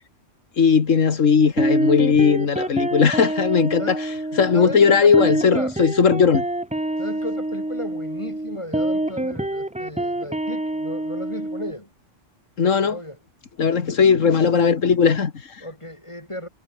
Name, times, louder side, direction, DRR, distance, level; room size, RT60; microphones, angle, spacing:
voice 1, 0.6-6.5 12.6-13.0 13.6-15.6, left 6 dB, 85° left, 2.0 m, -18 dB
sound 1, 1.4-11.7, right 1 dB, 10° right, 0.5 m, -26 dB
voice 2, 4.5-5.8 7.0-11.9 12.8-13.2 15.6-16.5, left 1 dB, 25° left, 6.3 m, -34 dB
omnidirectional pair, 1.3 m